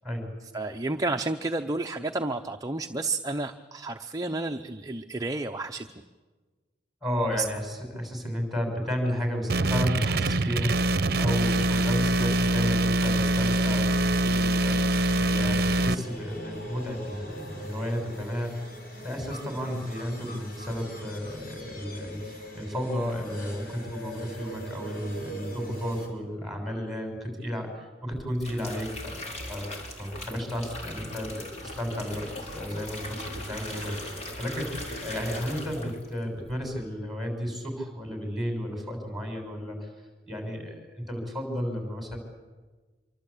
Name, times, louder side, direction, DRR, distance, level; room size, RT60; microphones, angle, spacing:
voice 1, 0.5-5.9 7.3-7.5, right 2 dB, 20° right, 5 dB, 0.8 m, -31 dB
voice 2, 7.0-18.8 19.0-29.7 30.0-39.9 40.3-42.2, equal, ahead, 3 dB, 6.7 m, -33 dB
sound 1, 9.5-16.0, right 1 dB, 60° right, 0.8 m, -24 dB
sound 2, 13.9-26.1, equal, 55° left, 5.5 m, -42 dB
sound 3, 28.1-36.1 36.4-36.8, left 1 dB, 40° left, 4.4 m, -39 dB
26.0 x 24.0 x 8.5 m, 1.3 s
head